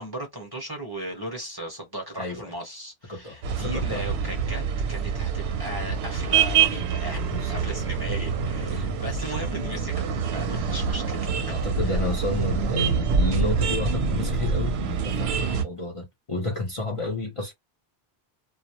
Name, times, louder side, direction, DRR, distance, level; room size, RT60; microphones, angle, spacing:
voice 1, 0.0-4.6 4.9-7.2 7.5-12.0 17.0-17.1, right 1 dB, 25° right, 0.8 m, -37 dB
voice 2, 2.1-2.5 3.1-4.0 7.3-7.6 8.6-9.0 11.5-17.5, left 2 dB, 35° left, 0.6 m, -31 dB
sound 1, 3.4-15.6, right 5 dB, 80° right, 0.8 m, -26 dB
2.3 x 2.0 x 2.8 m
omnidirectional pair, 1.0 m